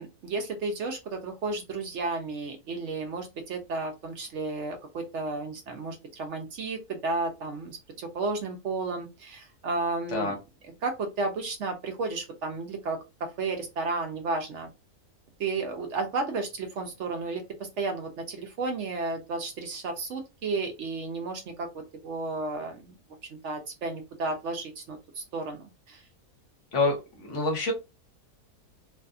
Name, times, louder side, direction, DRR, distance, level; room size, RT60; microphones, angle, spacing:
voice 1, 0.0-10.4 10.6-14.7 15.4-22.9 23.4-26.0, right 3 dB, 65° right, 4 dB, 0.7 m, -33 dB
voice 2, 26.7-27.7, left 3 dB, 55° left, 2 dB, 1.0 m, -27 dB
2.7 x 2.5 x 2.3 m, 0.25 s
omnidirectional pair, 1.6 m